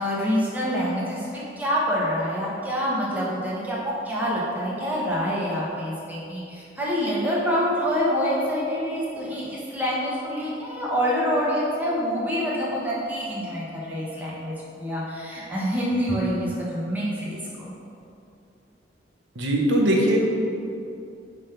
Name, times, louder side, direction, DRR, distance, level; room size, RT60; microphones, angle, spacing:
voice 1, 0.0-17.7, equal, 10° right, -6 dB, 1.1 m, -26 dB
voice 2, 19.4-20.2, right 1 dB, 75° right, 0 dB, 0.9 m, -20 dB
5.3 x 3.6 x 5.8 m, 2.6 s
head